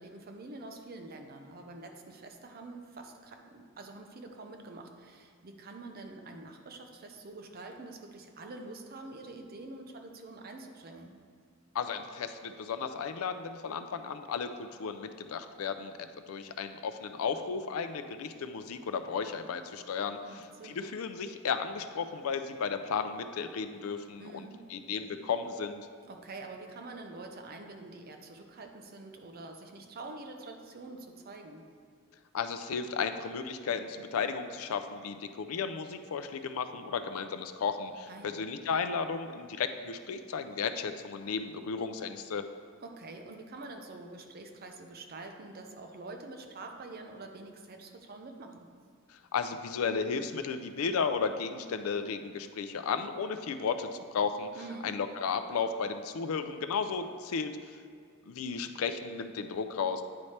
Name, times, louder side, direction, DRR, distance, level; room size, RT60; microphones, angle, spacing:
voice 1, 0.0-11.2 20.2-20.9 24.2-24.7 26.1-31.7 38.1-38.4 42.8-48.7 54.5-54.9, right 2 dB, 45° right, 4 dB, 0.6 m, -46 dB
voice 2, 11.7-25.9 32.3-42.4 49.3-54.5 54.8-57.6 58.3-60.0, left 5 dB, 80° left, 9 dB, 0.4 m, -34 dB
9.4 x 3.2 x 4.2 m, 2.2 s
head